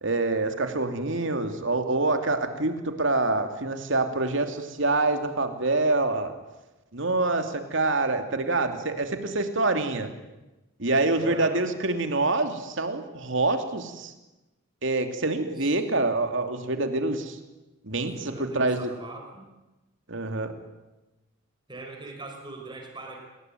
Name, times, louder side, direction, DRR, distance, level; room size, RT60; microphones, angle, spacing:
voice 1, 0.0-6.3 6.9-10.1 10.8-14.1 14.8-17.4 17.8-18.9 20.1-20.5, right 2 dB, 60° right, 7 dB, 2.9 m, -26 dB
voice 2, 11.2-11.5 15.6-15.8 18.0-19.5 21.7-23.2, right 2 dB, 20° right, 2 dB, 5.7 m, -41 dB
29.0 x 21.0 x 9.3 m, 1.0 s
head